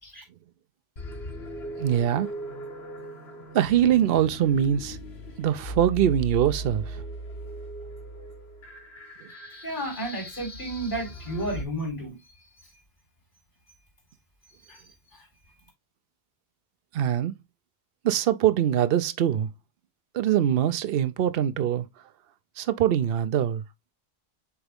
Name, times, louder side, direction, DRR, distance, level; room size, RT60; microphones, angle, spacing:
sound 1, 1.0-11.6, right 1 dB, 80° left, 1.8 m, -38 dB
voice 1, 1.8-2.3 3.5-5.0 5.4-7.0 16.9-17.3 18.0-19.5 20.1-21.9 22.6-23.6, right 10 dB, 65° right, 0.8 m, -23 dB
voice 2, 9.6-12.2 14.7-14.8, right 1 dB, 55° left, 4.2 m, -32 dB
8.1 x 3.5 x 3.4 m
omnidirectional pair, 1.1 m